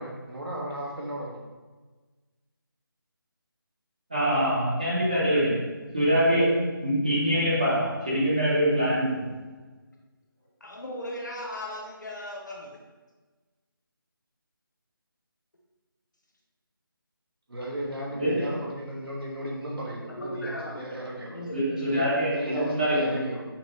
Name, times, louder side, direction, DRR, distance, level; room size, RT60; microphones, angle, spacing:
voice 1, 0.0-1.4 4.3-4.5 17.5-21.4 21.9-22.0 22.3-23.4, right 1 dB, 80° right, -3 dB, 1.2 m, -35 dB
voice 2, 4.1-5.6 5.9-9.2 18.1-18.5 21.5-23.2, equal, 20° right, -9 dB, 0.8 m, -24 dB
voice 3, 10.6-12.8 18.3-18.4 20.1-20.8 21.3-21.7, left 1 dB, 50° left, -1 dB, 0.9 m, -37 dB
5.9 x 2.7 x 3.0 m, 1.3 s
figure-of-eight pair, 180°, 12 cm